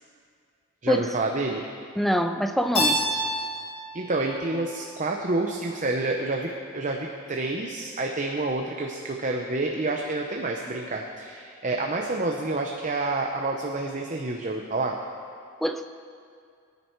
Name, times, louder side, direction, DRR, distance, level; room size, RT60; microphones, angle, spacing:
voice 1, 0.8-1.6 3.9-15.0, right 2 dB, 35° right, 1 dB, 0.8 m, -28 dB
voice 2, 2.0-3.1 15.6-15.9, equal, ahead, 7 dB, 0.5 m, -24 dB
Keyboard (musical), 2.7-5.6, equal, 85° left, 3.8 m, -29 dB
22.0 x 9.8 x 4.6 m, 2.3 s
head